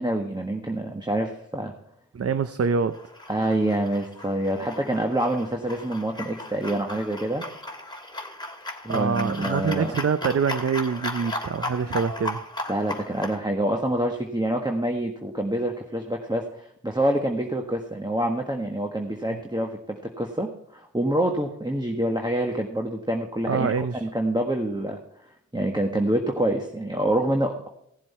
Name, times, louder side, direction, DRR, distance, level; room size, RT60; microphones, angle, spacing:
voice 1, 0.0-1.7 3.3-7.4 8.8-10.0 12.7-23.7 24.0-25.0 25.5-27.7, right 1 dB, 15° right, 2 dB, 1.4 m, -26 dB
voice 2, 2.1-3.0 8.9-12.4 19.3-19.4 23.5-24.1, right 6 dB, 50° right, 11 dB, 0.6 m, -25 dB
sound 1, 2.9-13.4, left 1 dB, 15° left, 2.5 m, -36 dB
16.5 x 7.5 x 4.3 m, 0.75 s
cardioid pair, 45°, 30 cm